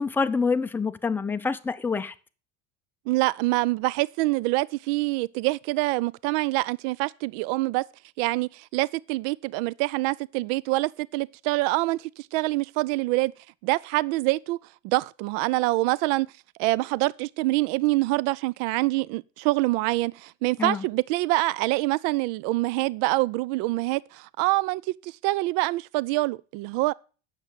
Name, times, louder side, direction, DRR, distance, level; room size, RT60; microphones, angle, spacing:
voice 1, 0.0-2.1 20.6-20.8, left 4 dB, 5° left, 0.5 m, -26 dB
voice 2, 3.1-7.9 8.2-13.3 13.6-14.6 14.8-16.3 16.6-26.9, right 20 dB, 70° right, 0.5 m, -25 dB
8.9 x 6.7 x 7.4 m
supercardioid pair, 115°, 39 cm